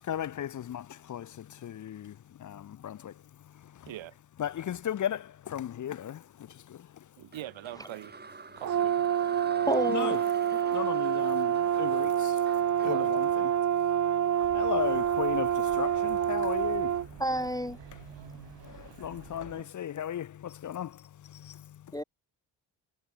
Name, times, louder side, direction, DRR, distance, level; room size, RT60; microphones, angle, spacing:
voice 1, 0.0-3.9 4.4-7.1 9.9-10.2 10.7-13.3 13.5-16.9 17.9-22.0, left 10 dB, 40° left, 0.7 m, -37 dB
voice 2, 7.2-8.2 8.5-9.0 12.8-13.1 19.5-19.7, right 13 dB, 90° right, 2.9 m, -42 dB
sound 1, 7.3-14.5, right 4 dB, 20° right, 5.2 m, -47 dB
Brass instrument, 8.6-17.1, right 10 dB, 40° right, 0.9 m, -27 dB
voice 3, 9.7-10.2 17.2-17.8 21.9-22.0, equal, 10° left, 0.4 m, -29 dB
sound 2, 14.4-19.6, right 12 dB, 65° right, 3.0 m, -49 dB
cardioid pair, 165°, 45 cm